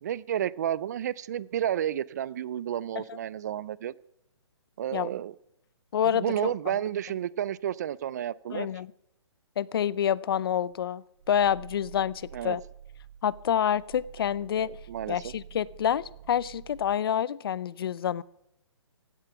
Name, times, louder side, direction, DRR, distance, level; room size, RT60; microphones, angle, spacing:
voice 1, 0.0-3.9 4.8-5.3 6.0-8.7 12.3-12.6 14.6-15.3, right 10 dB, 35° right, 22 dB, 0.4 m, -31 dB
voice 2, 5.9-6.7 8.5-8.9 9.6-12.6 13.2-14.7 15.1-18.2, left 9 dB, 50° left, 22 dB, 0.5 m, -28 dB
Growling, 10.7-17.0, right 8 dB, 55° right, 1.1 m, -49 dB
16.0 x 10.5 x 5.9 m, 0.81 s
hypercardioid pair, 155°, 16 cm